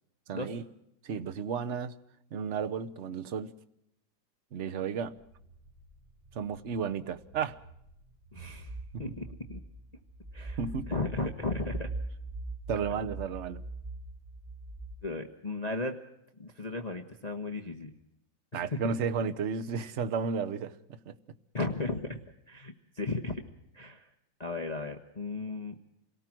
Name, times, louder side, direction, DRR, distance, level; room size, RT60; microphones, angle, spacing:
voice 1, 0.3-0.7 1.0-1.9 2.3-3.5 4.5-5.1 6.3-7.6 8.9-9.0 10.6-10.9 12.7-13.6 18.5-21.1, right 6 dB, 50° right, 10 dB, 1.1 m, -33 dB
sound 1, 5.3-14.9, right 2 dB, 10° right, 1.2 m, -42 dB
voice 2, 8.3-8.7 9.0-9.6 10.3-10.6 10.9-11.9 15.0-16.0 16.4-17.9 18.5-18.9 21.5-22.2 22.5-23.4 23.7-24.1 24.4-25.8, left 2 dB, 25° left, 4 dB, 1.1 m, -35 dB
27.0 x 18.5 x 6.1 m, 0.82 s
omnidirectional pair, 2.0 m